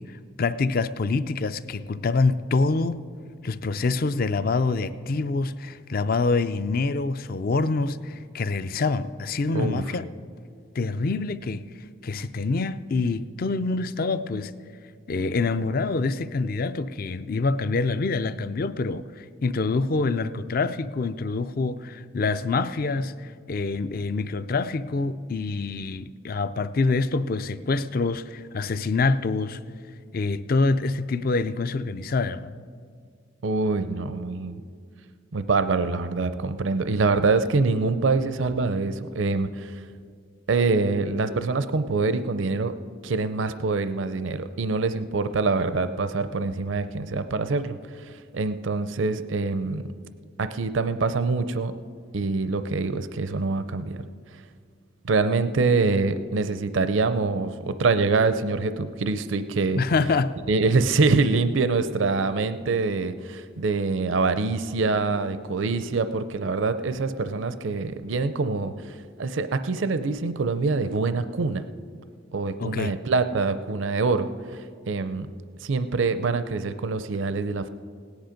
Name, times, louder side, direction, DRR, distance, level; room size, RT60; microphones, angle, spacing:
voice 1, 0.4-3.0 3.4-10.0 10.7-11.7 12.0-14.5 15.1-29.6 30.1-32.5 59.8-60.3 72.6-72.9, left 3 dB, 45° left, 13 dB, 0.4 m, -26 dB
voice 2, 9.5-9.9 33.4-34.6 35.3-39.8 40.5-42.7 43.0-49.8 50.4-51.7 52.1-54.1 55.0-59.8 60.5-71.7 72.3-75.3 75.6-77.7, right 3 dB, 70° right, 11 dB, 0.5 m, -25 dB
17.5 x 10.5 x 5.1 m, 2.1 s
head